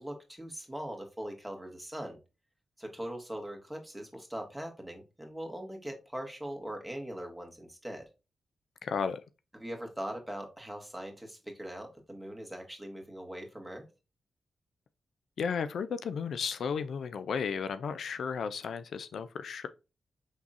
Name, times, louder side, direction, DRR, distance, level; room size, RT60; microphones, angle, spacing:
voice 1, 0.0-2.2 2.8-8.1 9.5-13.9, right 1 dB, 5° right, 1.8 m, -41 dB
voice 2, 8.8-9.2 15.4-19.7, left 6 dB, 75° left, 0.3 m, -34 dB
5.4 x 3.5 x 2.5 m
supercardioid pair, 45°, 0 cm